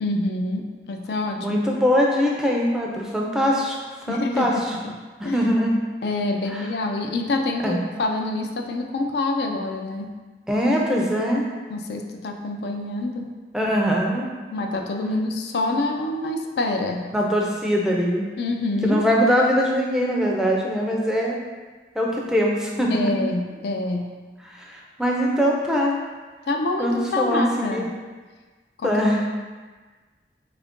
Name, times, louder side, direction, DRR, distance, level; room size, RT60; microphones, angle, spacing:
voice 1, 0.0-1.6 4.1-4.9 5.2-5.5 6.0-10.1 11.7-13.3 14.5-17.1 18.4-19.0 22.9-24.1 26.5-27.9 28.8-28.9, left 2 dB, 70° left, 3 dB, 0.4 m, -26 dB
voice 2, 1.4-3.8 4.1-4.8 5.2-5.7 6.5-6.7 7.6-7.8 10.5-11.5 13.5-14.3 17.1-18.3 18.8-21.4 21.9-23.3 24.4-26.0 26.8-27.9 28.8-29.2, equal, 5° right, -2 dB, 0.4 m, -22 dB
3.6 x 2.5 x 3.5 m, 1.4 s
head